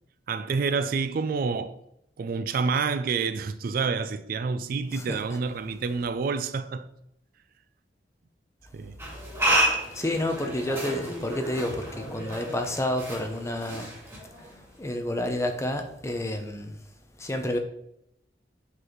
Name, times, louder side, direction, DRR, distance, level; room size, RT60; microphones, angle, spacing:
voice 1, 0.3-1.8 2.2-6.9 8.7-9.0, right 5 dB, 55° right, 0.3 m, -28 dB
voice 2, 4.9-5.4 9.8-13.9 14.3-16.8 17.2-17.6, left 1 dB, 15° left, 0.7 m, -30 dB
sound 1, 9.0-14.6, right 1 dB, 15° right, 2.4 m, -30 dB
7.8 x 4.0 x 3.1 m
head